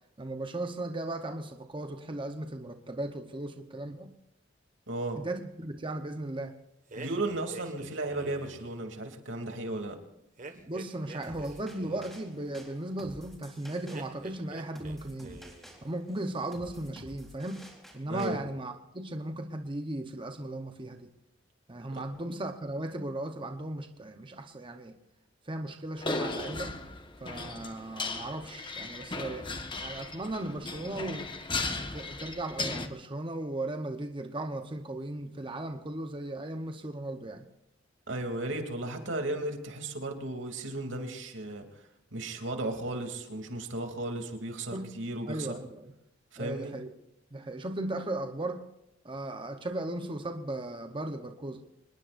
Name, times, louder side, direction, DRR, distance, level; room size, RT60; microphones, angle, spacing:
voice 1, 0.2-4.1 5.2-6.6 10.5-15.4 15.8-17.6 17.9-21.1 21.7-25.0 25.4-26.8 27.2-31.3 31.7-37.5 44.7-44.9 45.3-45.9 46.4-46.9 47.3-48.6 49.0-51.6, right 1 dB, 25° right, 5 dB, 1.0 m, -37 dB
voice 2, 4.9-5.2 6.9-10.0 18.1-18.4 21.9-22.0 38.1-41.7 42.1-45.6 46.3-46.8, right 2 dB, 80° right, 4 dB, 3.0 m, -35 dB
sound 1, 6.9-8.7 10.4-12.2 13.9-15.0 15.2-15.8, right 3 dB, 45° right, 1.7 m, -47 dB
sound 2, 11.2-18.3, equal, ahead, 3.9 m, -51 dB
sound 3, 26.0-32.9, left 3 dB, 25° left, 1.4 m, -36 dB
26.0 x 20.5 x 2.6 m, 0.86 s
head